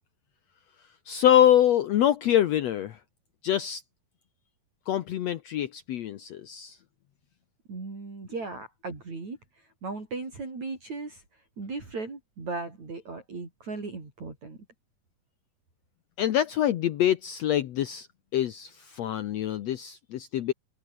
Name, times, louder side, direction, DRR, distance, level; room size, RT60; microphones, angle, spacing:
voice 1, 1.1-3.0 3.4-3.8 4.9-6.8 16.2-18.1 18.3-20.5, left 11 dB, 85° left, 1.5 m, -25 dB
voice 2, 7.7-9.4 9.8-11.2 11.6-14.6, right 3 dB, 45° right, 7.6 m, -37 dB
open air
omnidirectional pair, 4.5 m